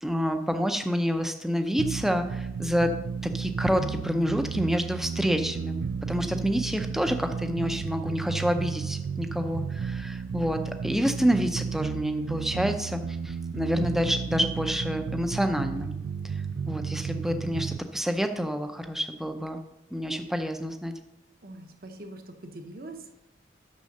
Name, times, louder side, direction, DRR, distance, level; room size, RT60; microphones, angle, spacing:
voice 1, 0.0-2.9 3.2-5.8 6.1-13.0 13.2-15.9 16.7-19.6 19.9-20.9, equal, ahead, 6 dB, 0.5 m, -28 dB
sound 1, 1.8-17.8, right 6 dB, 85° right, 0.3 m, -33 dB
voice 2, 21.4-23.1, right 2 dB, 55° right, 5 dB, 0.9 m, -43 dB
6.4 x 6.1 x 6.6 m, 0.91 s
head